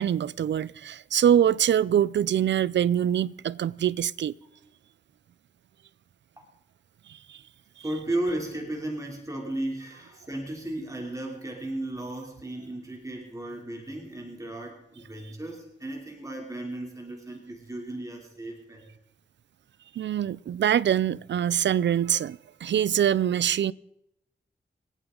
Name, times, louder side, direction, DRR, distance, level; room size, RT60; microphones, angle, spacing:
voice 1, 0.0-4.3 7.1-7.4 20.0-23.7, right 9 dB, 80° right, 0.4 m, -24 dB
voice 2, 7.8-18.9, right 1 dB, 20° right, 3.0 m, -35 dB
26.0 x 9.0 x 3.8 m
cardioid pair, 60°, 18 cm